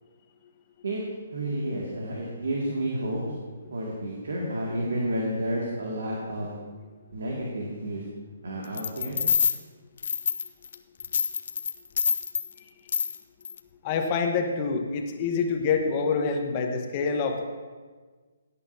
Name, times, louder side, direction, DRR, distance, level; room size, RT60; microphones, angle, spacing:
voice 1, 1.3-3.2 3.7-6.5 7.1-8.0 8.4-9.2, right 1 dB, 75° right, -4 dB, 2.2 m, -30 dB
sound 1, 8.8-9.6 10.0-10.7 11.0-12.5 12.9-13.2 13.4-13.6, left 7 dB, 60° left, 0.6 m, -26 dB
voice 2, 13.8-17.4, left 5 dB, 35° left, 3 dB, 1.2 m, -26 dB
16.5 x 8.6 x 2.8 m, 1.4 s
hypercardioid pair, 145°, 0 cm